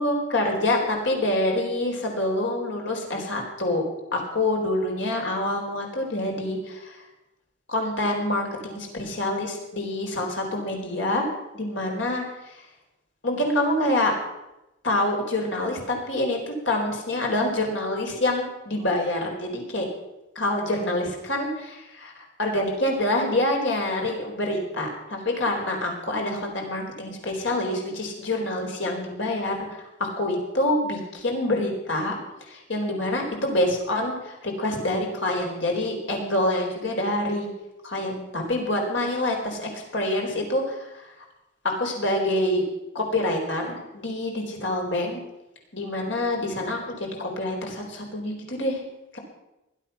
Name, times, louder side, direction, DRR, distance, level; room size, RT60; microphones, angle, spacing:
voice 1, 0.0-3.8 4.1-7.1 7.7-11.2 11.5-12.6 13.2-14.1 14.8-19.9 20.3-37.5 37.8-41.1 41.6-42.6 42.9-45.2 45.7-48.8 49.1-49.2, left 1 dB, 65° left, 1 dB, 4.4 m, -26 dB
20.0 x 12.0 x 5.9 m, 0.93 s
head